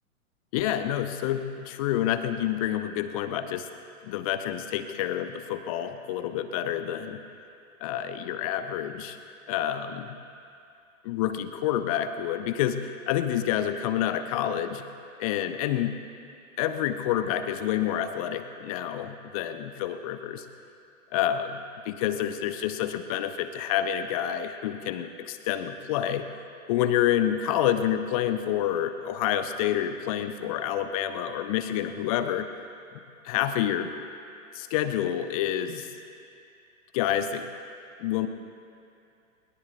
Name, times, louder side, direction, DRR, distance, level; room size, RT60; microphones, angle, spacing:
voice 1, 0.5-3.7 4.0-7.2 7.8-9.2 9.5-10.2 11.0-14.9 15.2-16.0 16.6-20.4 21.1-26.3 26.7-32.5 33.2-33.9 34.5-35.9 36.9-37.5 38.0-38.3, left 11 dB, 25° left, 9 dB, 0.7 m, -28 dB
21.0 x 21.0 x 2.6 m, 2.5 s
figure-of-eight pair, 115°, 43 cm